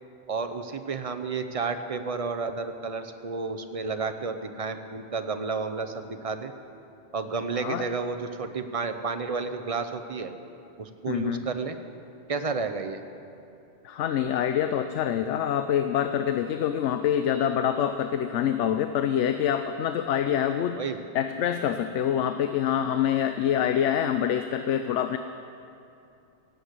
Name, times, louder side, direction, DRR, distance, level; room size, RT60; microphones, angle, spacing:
voice 1, 0.3-6.5 7.1-10.3 10.8-11.8 12.3-13.0 20.5-21.0, right 4 dB, 35° right, 8 dB, 0.7 m, -31 dB
voice 2, 11.1-11.5 13.8-20.8 21.1-25.2, left 9 dB, 80° left, 9 dB, 0.9 m, -26 dB
17.0 x 8.1 x 8.1 m, 2.7 s
omnidirectional pair, 1.2 m